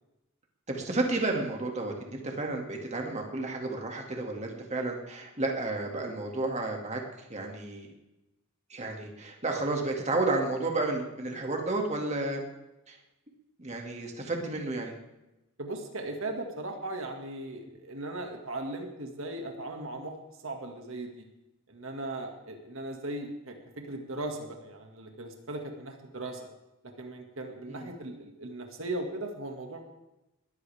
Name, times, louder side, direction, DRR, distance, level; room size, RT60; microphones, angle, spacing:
voice 1, 0.7-7.0 7.3-7.9 8.7-12.4 12.9-13.0 13.6-14.9 27.7-27.9, right 2 dB, 35° right, 1 dB, 2.2 m, -31 dB
voice 2, 15.6-20.2 20.4-21.2 21.7-26.5 26.8-29.9, right 2 dB, 70° right, 3 dB, 2.1 m, -38 dB
21.5 x 14.5 x 3.5 m, 0.97 s
head